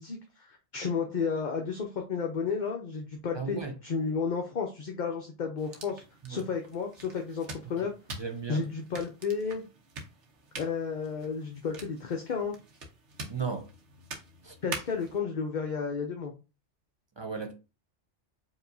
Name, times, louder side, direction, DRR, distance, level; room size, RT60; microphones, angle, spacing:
voice 1, 0.0-6.0 6.3-7.9 8.5-9.6 10.6-12.6 14.6-16.3, left 5 dB, 50° left, 0.7 m, -32 dB
voice 2, 3.3-3.7 6.2-6.4 7.8-7.9 8.2-8.6 13.3-13.7 14.4-14.5 17.2-17.5, right 5 dB, 30° right, 0.6 m, -35 dB
sound 1, 5.6-15.2, right 3 dB, 70° right, 1.2 m, -45 dB
4.8 x 2.9 x 2.6 m
omnidirectional pair, 1.2 m